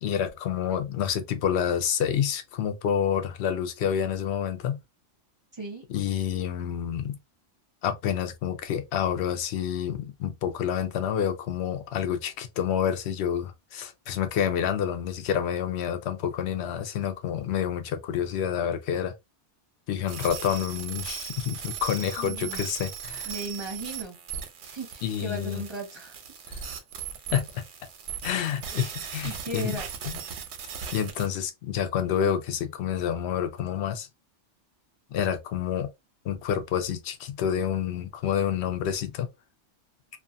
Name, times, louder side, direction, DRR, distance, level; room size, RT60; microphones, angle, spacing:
voice 1, 0.0-4.8 5.9-7.2 7.8-19.1 19.9-23.3 25.0-25.6 26.5-26.7 27.3-27.6 28.2-29.8 30.9-34.1 35.1-35.9 36.2-39.3, left 9 dB, 70° left, 0.8 m, -28 dB
voice 2, 5.5-5.8 22.2-22.6 23.3-24.2 24.6-26.2 29.2-29.8, right 2 dB, 30° right, 0.6 m, -36 dB
sound 1, 20.1-31.3, right 8 dB, 85° right, 1.0 m, -38 dB
2.5 x 2.3 x 2.5 m
omnidirectional pair, 1.2 m